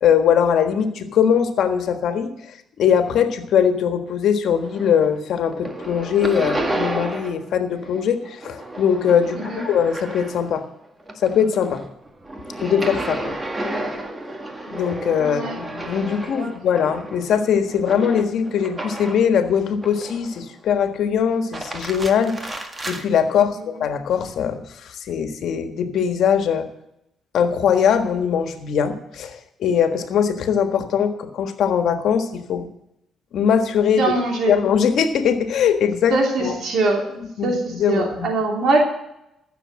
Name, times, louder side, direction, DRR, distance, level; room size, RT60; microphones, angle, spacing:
voice 1, 0.0-2.3 2.8-10.6 11.2-11.8 12.6-13.3 14.7-26.7 27.3-32.7 33.3-34.1 34.5-36.1 36.4-36.5 37.4-38.3, left 7 dB, 70° left, 7 dB, 1.5 m, -21 dB
sound 1, 4.5-5.2 5.5-7.5 7.8-10.6 11.0-19.3 19.8-20.5 21.3-23.0, right 1 dB, 20° right, 1.8 m, -31 dB
voice 2, 15.2-15.6 16.3-16.5 34.0-34.5 36.1-37.0 37.4-38.8, right 3 dB, 65° right, 1 dB, 3.1 m, -22 dB
14.5 x 7.0 x 7.5 m, 0.82 s
cardioid pair, 90°, 0 cm